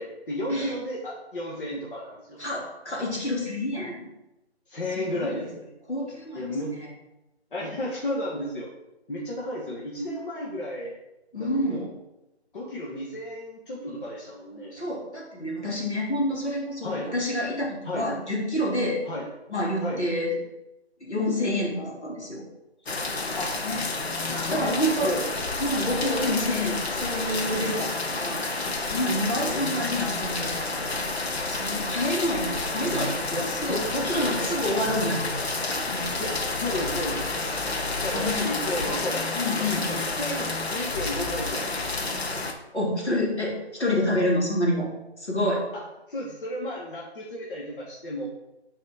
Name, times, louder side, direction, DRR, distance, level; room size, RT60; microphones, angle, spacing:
voice 1, 0.0-2.4 4.7-5.7 6.3-6.7 7.5-8.7 9.1-10.9 11.4-11.9 12.5-14.8 16.8-17.1 17.8-18.1 19.0-19.3 19.8-20.0 23.4-23.6 24.2-25.2 29.5-30.4 33.3-34.6 36.2-37.5 38.0-39.2 39.9-42.3 45.7-45.8 46.1-48.3, left 1 dB, 50° left, -4 dB, 1.5 m, -33 dB
voice 2, 2.4-4.1 5.0-5.5 5.9-6.4 11.3-11.9 14.7-19.0 19.5-20.4 21.0-22.4 23.6-23.8 24.5-25.2 25.6-28.4 28.7-30.7 31.5-33.2 33.6-36.0 38.1-38.4 39.4-39.9 42.7-44.9 45.2-45.6, left 1 dB, 85° left, -3 dB, 2.8 m, -28 dB
sound 1, 22.9-42.5, left 3 dB, 70° left, 1.1 m, -30 dB
6.6 x 4.3 x 5.1 m, 0.94 s
figure-of-eight pair, 160°, 33 cm